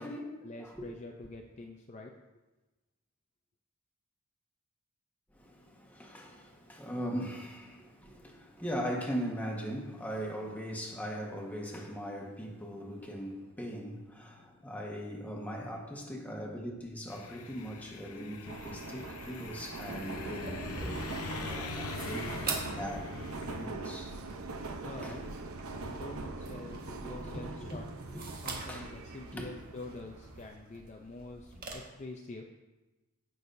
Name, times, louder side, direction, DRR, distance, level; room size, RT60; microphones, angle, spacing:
voice 1, 0.4-2.1 24.8-25.2 25.8-27.9 28.4-32.4, left 2 dB, 30° left, 2 dB, 0.5 m, -46 dB
voice 2, 5.3-23.2 23.5-24.2 25.0-25.2 26.8-26.9 27.2-27.8 28.7-28.9 29.3-29.5, equal, 5° left, -1 dB, 1.3 m, -40 dB
sound 1, 17.1-23.7, left 4 dB, 85° left, 0.8 m, -43 dB
Subway metro underground, 18.5-30.5, right 3 dB, 75° right, 0.7 m, -42 dB
sound 2, 20.3-31.7, right 4 dB, 45° right, 1.5 m, -45 dB
16.5 x 6.3 x 2.7 m, 1.1 s
head